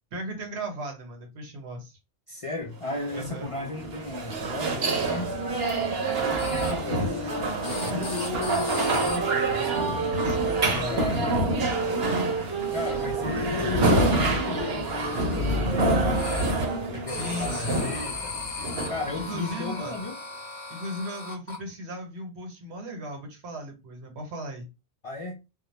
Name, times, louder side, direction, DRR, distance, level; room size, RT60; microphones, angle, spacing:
voice 1, 0.1-2.0 3.1-3.5 6.8-7.3 7.9-8.1 10.0-11.3 17.1-17.9 19.0-20.0 20.7-24.7, equal, 90° right, 1.1 m, -36 dB
voice 2, 2.3-5.4 6.2-10.1 10.7-11.4 12.7-18.3 18.9-20.2 25.0-25.4, left 3 dB, 60° left, 0.3 m, -35 dB
sound 1, 2.8-19.9, right 2 dB, 70° right, 0.9 m, -27 dB
sound 2, 5.2-11.0 11.7-17.2, right 4 dB, 25° right, 0.6 m, -33 dB
sound 3, 6.4-6.7 7.6-9.2 10.1-10.4 10.6-11.0 11.5-11.9 12.2-13.1 13.8-15.6 16.1-16.5 17.1-21.6, left 4 dB, 30° left, 0.7 m, -38 dB
2.2 x 2.1 x 3.0 m
omnidirectional pair, 1.1 m